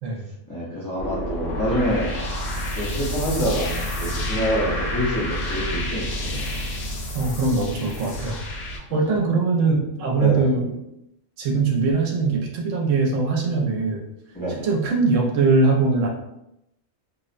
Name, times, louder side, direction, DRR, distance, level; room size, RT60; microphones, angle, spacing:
voice 1, 0.5-2.1 2.7-6.5 8.9-9.2 10.2-10.5 14.3-14.7, equal, 25° left, -8 dB, 0.4 m, -26 dB
sound 1, 1.0-8.8, left 1 dB, 80° left, 1.0 m, -29 dB
voice 2, 7.1-8.4 8.7-10.7 11.4-14.0 14.6-16.1, right 3 dB, 85° right, 0 dB, 1.0 m, -21 dB
2.6 x 2.1 x 2.4 m, 0.85 s
omnidirectional pair, 1.3 m